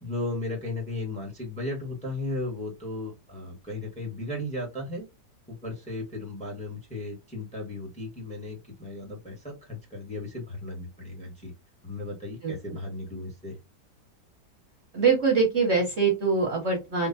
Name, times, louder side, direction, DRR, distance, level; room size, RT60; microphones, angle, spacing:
voice 1, 0.0-5.1 5.5-11.5 11.8-13.6, left 2 dB, 5° left, -1 dB, 1.0 m, -35 dB
voice 2, 14.9-17.1, right 5 dB, 45° right, 0 dB, 1.0 m, -23 dB
3.7 x 2.6 x 2.6 m, 0.23 s
omnidirectional pair, 1.9 m